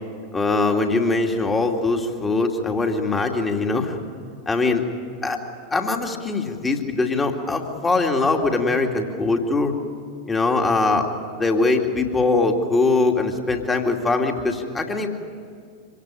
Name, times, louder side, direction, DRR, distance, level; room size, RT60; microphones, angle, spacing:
voice 1, 0.3-4.0 4.5-4.8 5.2-5.4 5.7-9.7 10.3-11.1 11.4-15.1, left 3 dB, 15° left, 3 dB, 2.5 m, -22 dB
25.5 x 18.0 x 9.9 m, 2.2 s
figure-of-eight pair, 85°, 0 cm